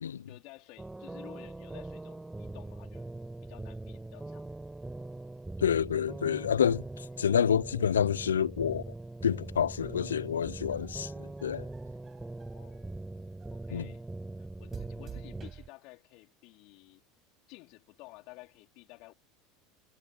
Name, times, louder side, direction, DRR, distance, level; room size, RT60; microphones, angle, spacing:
voice 1, 0.3-3.1 3.4-4.4 12.4-12.9 13.5-14.0 14.4-17.0 17.5-19.1, left 24 dB, 60° left, 4.4 m, -53 dB
sound 1, 0.8-15.5, right 2 dB, 10° right, 5.0 m, -42 dB
voice 2, 5.6-8.9 9.2-11.6 13.7-13.9, left 8 dB, 85° left, 0.6 m, -28 dB
sound 2, 9.8-12.9 13.4-14.0 14.7-15.7, right 8 dB, 35° right, 6.6 m, -50 dB
hypercardioid pair, 80°, 0 cm